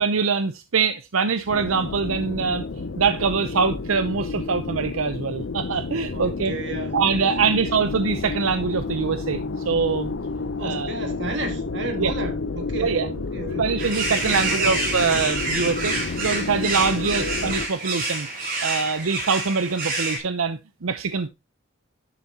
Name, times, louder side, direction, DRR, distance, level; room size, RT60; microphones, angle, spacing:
voice 1, 0.0-6.5 6.9-9.4 9.6-10.1 10.6-10.9 12.0-12.1 12.8-13.1 13.6-21.3, right 5 dB, 90° right, 0.7 m, -24 dB
sound 1, 1.5-17.7, left 3 dB, 65° left, 0.6 m, -30 dB
voice 2, 6.1-7.6 10.6-13.6 14.3-14.9 16.9-17.4, right 2 dB, 60° right, 1.8 m, -33 dB
sound 2, 13.8-20.2, right 2 dB, 40° right, 4.3 m, -27 dB
11.0 x 6.9 x 2.8 m
head